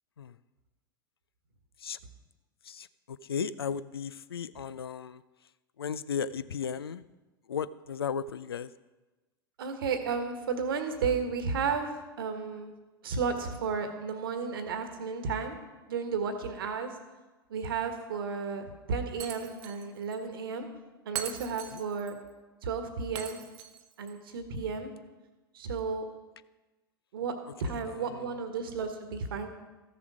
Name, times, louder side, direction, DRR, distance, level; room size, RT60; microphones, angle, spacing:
voice 1, 2.6-5.2 5.8-7.0 7.5-8.7 21.7-21.8 27.6-28.4, left 7 dB, 80° left, 18 dB, 0.4 m, -36 dB
voice 2, 9.6-11.9 12.2-12.7 13.0-15.6 15.9-17.0 17.5-20.7 21.0-22.2 22.6-23.4 24.0-24.9 25.5-26.1 27.1-27.3 27.6-29.5, right 5 dB, 65° right, 8 dB, 1.4 m, -33 dB
Shatter, 19.2-19.9 20.1-20.2 21.1-22.1 23.1-24.1, right 11 dB, 50° right, 0.9 m, -40 dB
14.0 x 7.0 x 4.9 m, 1.2 s
figure-of-eight pair, 85°, 13 cm